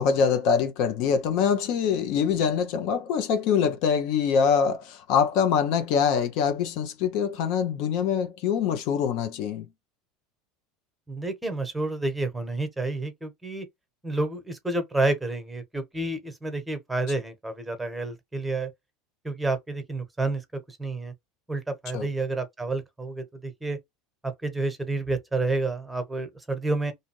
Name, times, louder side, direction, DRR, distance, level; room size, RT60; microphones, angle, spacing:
voice 1, 0.0-9.7 21.9-22.1, left 7 dB, 60° left, 0.5 m, -24 dB
voice 2, 11.1-13.7 14.0-18.7 19.2-20.4 20.7-21.1 21.5-23.8 24.2-26.9, right 2 dB, 5° right, 1.0 m, -29 dB
2.6 x 2.5 x 3.0 m
hypercardioid pair, 80°, 0 cm